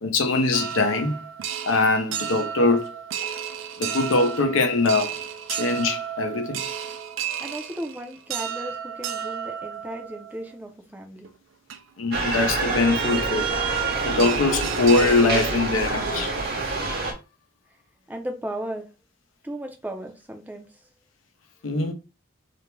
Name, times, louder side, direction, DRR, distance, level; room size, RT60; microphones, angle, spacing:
voice 1, 0.0-1.2 1.7-2.9 3.8-5.2 5.5-6.6 12.0-13.5 14.0-16.3 21.6-21.9, left 3 dB, 85° left, 0.6 m, -22 dB
sound 1, 0.5-10.6 11.2-11.3 11.7-11.8 13.8-13.9 14.2-15.9 16.3-16.4 16.7-17.0, right 9 dB, 75° right, 0.4 m, -33 dB
voice 2, 7.4-11.3 18.1-18.9 19.4-20.7, right 1 dB, 10° right, 0.4 m, -35 dB
sound 2, 12.1-17.1, right 3 dB, 50° right, 0.7 m, -26 dB
2.5 x 2.1 x 3.0 m
head